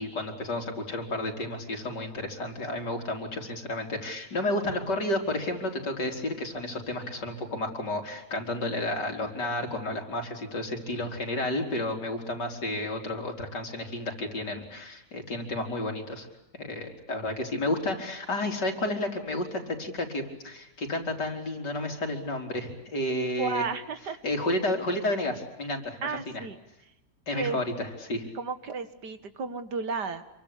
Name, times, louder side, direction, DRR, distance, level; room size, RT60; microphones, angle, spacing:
voice 1, 0.0-16.3 16.6-23.6 24.2-26.1 26.3-26.4 27.3-28.3, left 1 dB, 85° left, 3 dB, 4.7 m, -31 dB
voice 2, 23.4-24.2 26.0-26.6 27.3-27.6 28.3-30.2, right 4 dB, 75° right, 11 dB, 2.3 m, -33 dB
27.5 x 24.0 x 8.5 m, 0.89 s
omnidirectional pair, 1.8 m